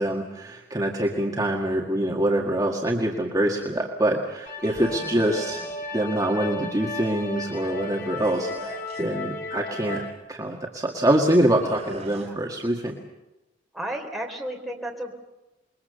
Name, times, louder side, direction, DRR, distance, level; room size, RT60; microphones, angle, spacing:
voice 1, 0.0-5.6 5.9-8.7 9.0-13.0, right 1 dB, 20° right, -1 dB, 1.9 m, -25 dB
sound 1, 4.5-10.1, left 2 dB, 50° left, 3.8 m, -35 dB
sound 2, 4.6-5.7 8.2-9.2 11.6-12.3, right 2 dB, 35° right, 4.0 m, -41 dB
voice 2, 4.8-5.2 12.1-12.5 13.7-15.1, right 1 dB, ahead, 0 dB, 3.7 m, -34 dB
27.0 x 22.5 x 6.9 m, 1.0 s
head